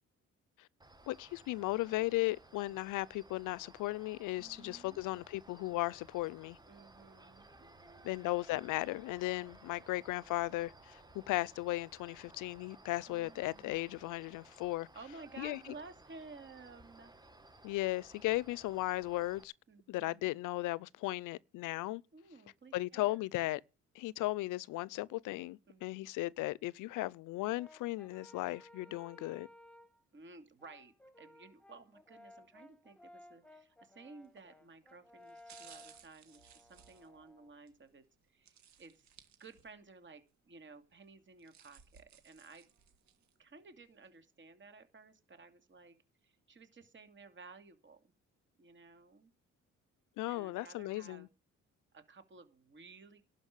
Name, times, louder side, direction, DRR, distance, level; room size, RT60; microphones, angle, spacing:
sound 1, 0.8-19.4, right 2 dB, 15° right, 1.6 m, -59 dB
voice 1, 1.1-6.6 8.0-14.9 15.4-15.6 17.6-19.5 19.9-22.0 22.7-23.6 23.9-29.5 50.2-51.3, left 18 dB, 90° left, 0.5 m, -36 dB
voice 2, 4.4-5.0 6.7-8.1 13.1-14.1 14.9-17.1 19.7-20.3 22.1-23.2 25.7-26.0 28.9-29.4 30.1-39.1 39.4-42.7 43.4-46.0 46.2-48.1 48.5-49.3 50.3-51.3 51.9-53.2, right 3 dB, 40° right, 2.7 m, -55 dB
Brass instrument, 27.5-30.0 30.6-37.6, left 1 dB, 5° left, 1.5 m, -58 dB
sound 2, 34.2-34.5 35.2-37.8 38.5-39.9 40.3-40.4 41.2-43.3 43.8-43.9, right 8 dB, 65° right, 2.0 m, -60 dB
12.0 x 5.5 x 8.3 m
cardioid pair, 90°, 30 cm